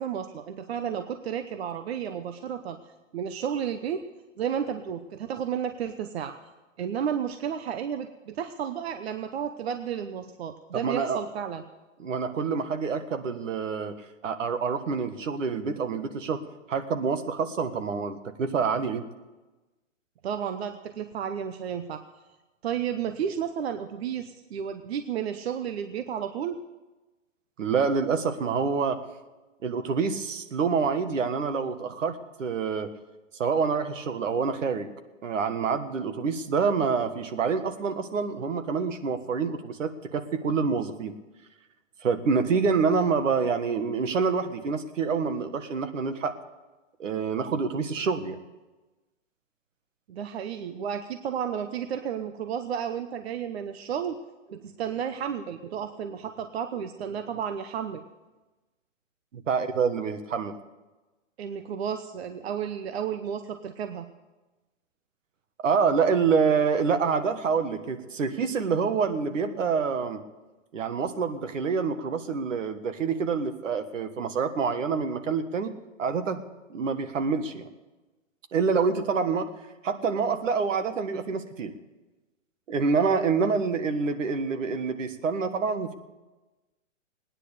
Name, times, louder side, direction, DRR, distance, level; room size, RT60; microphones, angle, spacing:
voice 1, 0.0-4.0 4.4-6.3 6.8-11.6 20.2-22.0 22.6-26.6 50.1-54.2 54.5-58.0 61.4-64.1, right 8 dB, 55° right, 8 dB, 0.9 m, -32 dB
voice 2, 10.7-11.2 12.0-13.9 14.2-16.4 16.7-19.0 27.6-29.0 29.6-32.9 33.4-34.9 35.2-41.1 42.0-46.3 47.0-48.4 59.3-60.6 65.6-70.2 70.7-75.7 76.0-76.4 76.7-77.7 78.5-79.5 79.8-81.8 82.7-85.9, right 5 dB, 75° right, 9 dB, 1.6 m, -27 dB
18.5 x 9.9 x 6.7 m, 1.2 s
hypercardioid pair, 155°, 38 cm